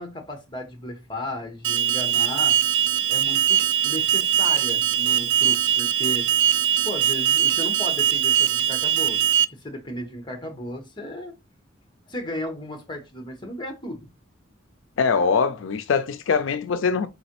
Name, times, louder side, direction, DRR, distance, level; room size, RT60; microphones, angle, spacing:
voice 1, 0.0-2.6 3.1-6.3 6.8-9.2 9.5-11.4 12.1-14.1, left 1 dB, 25° left, 1.1 m, -35 dB
Alarm, 1.6-9.4, right 9 dB, 65° right, 0.4 m, -21 dB
voice 2, 15.0-17.1, left 5 dB, 85° left, 0.4 m, -22 dB
4.0 x 3.8 x 2.9 m
head